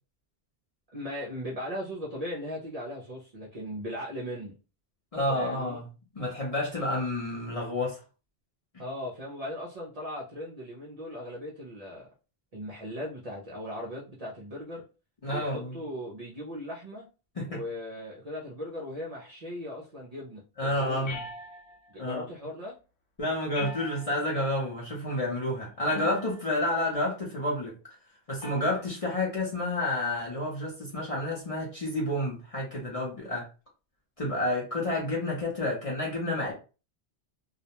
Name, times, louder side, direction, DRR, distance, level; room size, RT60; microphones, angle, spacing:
voice 1, 0.9-4.6 5.3-5.8 8.8-12.1 12.5-14.9 15.3-17.1 17.5-21.1 21.9-22.8, left 1 dB, 50° right, -3 dB, 0.5 m, -38 dB
voice 2, 5.1-5.9 6.1-8.0 15.2-15.7 17.4-17.6 20.6-21.2 22.0-22.2 23.2-27.7 28.3-33.5 34.2-36.5, left 1 dB, 40° left, -4 dB, 0.6 m, -30 dB
Glass Vase (Accoustic), 21.0-21.9 23.5-24.4 25.9-26.5 28.4-28.8, left 3 dB, 75° left, 0.8 m, -41 dB
2.4 x 2.1 x 2.8 m, 0.33 s
omnidirectional pair, 1.2 m